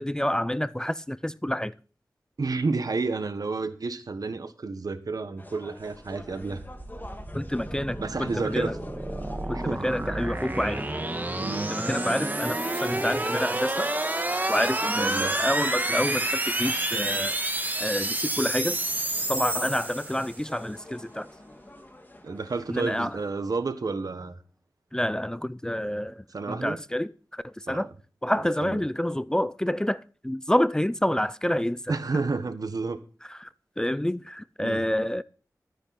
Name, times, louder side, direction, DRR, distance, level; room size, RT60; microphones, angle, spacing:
voice 1, 0.0-1.7 7.3-8.8 9.5-10.8 11.7-13.9 14.5-17.4 17.8-18.8 19.3-21.3 22.7-23.2 24.9-27.9 28.2-31.9 33.3-33.5 33.8-35.2, left 1 dB, 10° left, 0.4 m, -28 dB
voice 2, 2.4-6.6 8.0-8.8 9.5-9.9 11.4-11.7 15.0-15.4 22.2-24.4 26.3-26.8 27.7-27.8 28.6-28.8 31.9-33.0 34.6-34.8, right 3 dB, 70° right, 1.3 m, -30 dB
sound 1, 5.4-23.3, left 1 dB, 30° left, 1.9 m, -47 dB
sound 2, 6.3-20.5, right 1 dB, 25° right, 1.7 m, -29 dB
13.0 x 9.9 x 4.2 m
wide cardioid pair, 90°, 7 cm